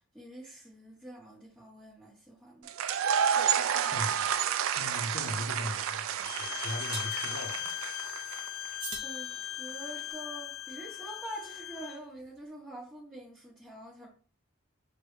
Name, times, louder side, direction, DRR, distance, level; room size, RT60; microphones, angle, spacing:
voice 1, 0.1-2.7 3.3-4.0 9.0-14.1, right 1 dB, 5° right, 1.2 m, -46 dB
sound 1, 2.7-8.7, right 8 dB, 75° right, 0.3 m, -30 dB
voice 2, 3.8-4.3 4.8-7.7, left 1 dB, 50° left, 0.6 m, -39 dB
sound 2, 4.9-5.1 6.9-7.3 8.8-9.9, right 3 dB, 25° right, 0.7 m, -43 dB
Bowed string instrument, 6.2-12.0, left 15 dB, 90° left, 0.4 m, -39 dB
6.3 x 2.1 x 3.2 m
head